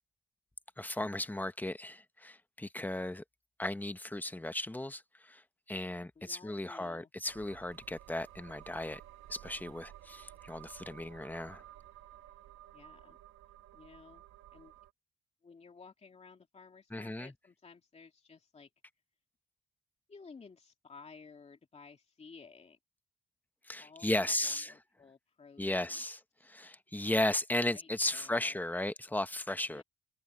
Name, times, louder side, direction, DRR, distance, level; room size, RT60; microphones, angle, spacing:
voice 1, 0.8-3.2 3.6-5.4 5.7-9.0 9.3-11.6 16.9-17.3 23.7-24.7 25.6-29.8, left 1 dB, 10° left, 1.1 m, -35 dB
voice 2, 6.2-7.1 12.7-13.2 13.7-14.2 14.5-14.7 15.4-18.7 20.1-22.8 23.8-26.1 27.7-28.6 29.7-29.8, left 5 dB, 30° left, 2.5 m, -55 dB
sound 1, 7.3-14.9, right 13 dB, 85° right, 1.4 m, -54 dB
cardioid pair, 90°, 20 cm